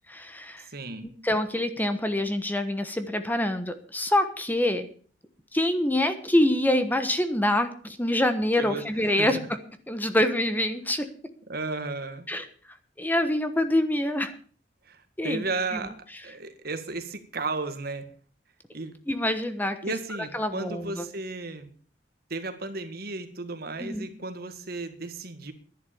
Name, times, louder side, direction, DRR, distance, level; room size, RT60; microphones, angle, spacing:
voice 1, 0.1-0.7 1.2-4.9 5.5-9.4 9.9-11.1 12.3-12.4 13.0-14.3 15.2-15.5 19.1-19.8 20.3-21.1 23.8-24.1, left 1 dB, 10° left, 9 dB, 1.1 m, -25 dB
voice 2, 0.7-1.1 8.6-9.4 11.5-12.3 14.8-16.0 16.2-18.1 18.7-19.0 19.8-21.7 22.3-25.5, right 3 dB, 60° right, 9 dB, 1.8 m, -34 dB
11.5 x 11.0 x 6.9 m, 0.43 s
head